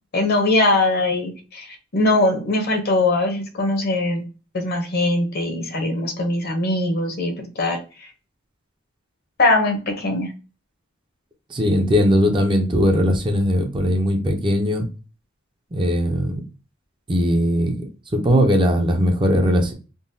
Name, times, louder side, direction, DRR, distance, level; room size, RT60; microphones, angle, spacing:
voice 1, 0.1-4.2 4.5-7.8 9.4-10.3, left 2 dB, 50° left, 4 dB, 0.8 m, -21 dB
voice 2, 11.5-14.9 15.7-16.4 17.1-19.7, equal, 25° right, 4 dB, 0.5 m, -19 dB
3.8 x 2.2 x 2.6 m, 0.34 s
head